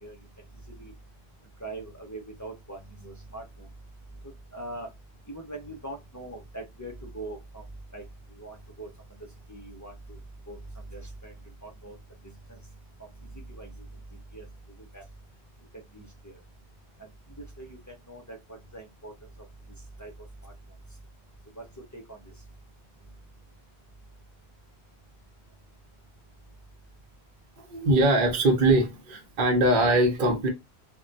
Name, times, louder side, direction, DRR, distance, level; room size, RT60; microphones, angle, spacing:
voice 1, 1.6-3.4 4.5-4.9 5.3-7.6 7.9-8.0 8.4-8.9 9.5-10.2 10.5-10.6 10.9-11.3 11.6-12.0 12.5-12.6 13.3-13.7 14.3-14.4 14.9-15.0 15.9-16.4 17.6-17.8 18.1-18.4 18.7-19.1 20.0-20.1 20.4-20.5 21.6-21.7 21.9-22.2, right 2 dB, 25° left, 0.4 m, -41 dB
voice 2, 27.6-30.5, right 1 dB, 55° right, 0.8 m, -22 dB
2.2 x 2.1 x 3.8 m
omnidirectional pair, 1.1 m